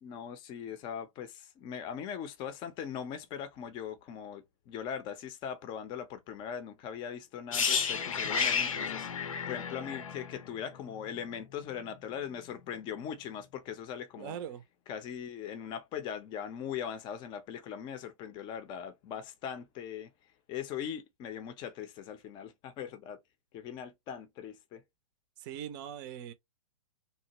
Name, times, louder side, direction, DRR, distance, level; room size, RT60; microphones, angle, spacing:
voice 1, 0.0-9.1 9.5-14.4 14.9-20.1 20.5-23.2 23.5-24.8, left 8 dB, 25° left, 0.6 m, -40 dB
sound 1, 7.5-11.4 11.6-11.8, left 6 dB, 75° left, 0.7 m, -32 dB
voice 2, 14.2-14.6 25.4-26.3, right 9 dB, 35° right, 0.5 m, -41 dB
2.8 x 2.1 x 2.9 m
hypercardioid pair, 120°, 18 cm